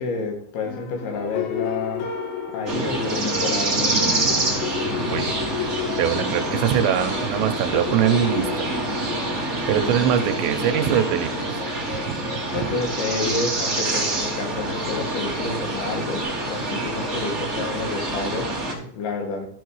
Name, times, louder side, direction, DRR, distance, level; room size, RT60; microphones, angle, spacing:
voice 1, 0.0-2.1 2.5-4.1 12.5-19.5, left 3 dB, 65° left, 2 dB, 3.3 m, -29 dB
sound 1, 0.7-16.3, left 6 dB, 90° left, 3.7 m, -33 dB
sound 2, 2.7-18.7, right 2 dB, 70° right, 0.6 m, -26 dB
voice 2, 5.1-8.7 9.7-11.6 12.0-12.4 16.7-16.9, right 10 dB, 85° right, 9 dB, 3.0 m, -23 dB
11.5 x 4.7 x 4.7 m, 0.63 s
omnidirectional pair, 5.0 m